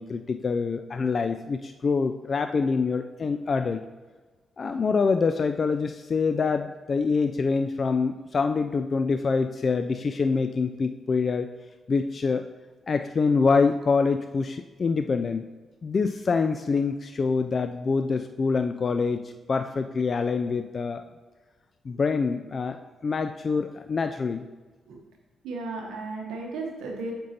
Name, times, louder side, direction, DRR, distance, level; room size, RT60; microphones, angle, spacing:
voice 1, 0.0-3.8 4.6-11.5 11.9-12.4 12.9-15.5 15.8-21.0 21.9-24.5, left 4 dB, 50° left, 7 dB, 0.3 m, -25 dB
voice 2, 25.4-27.1, right 3 dB, 90° right, 1 dB, 0.9 m, -34 dB
7.6 x 5.3 x 2.8 m, 1.3 s
supercardioid pair, 60°, 0 cm